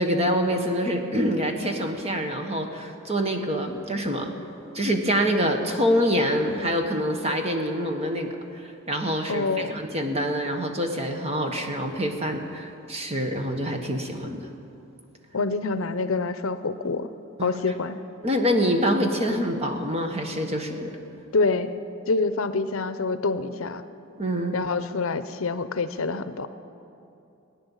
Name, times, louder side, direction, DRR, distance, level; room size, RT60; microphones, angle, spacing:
voice 1, 0.0-4.3 4.7-14.5 17.4-17.5 18.2-21.0 24.2-24.6, equal, 30° right, 4 dB, 1.4 m, -26 dB
voice 2, 9.3-9.8 15.3-17.1 17.4-18.0 21.3-21.7 22.1-23.8 24.5-26.5, left 3 dB, 70° left, 11 dB, 0.7 m, -26 dB
19.0 x 9.8 x 7.3 m, 2.8 s
head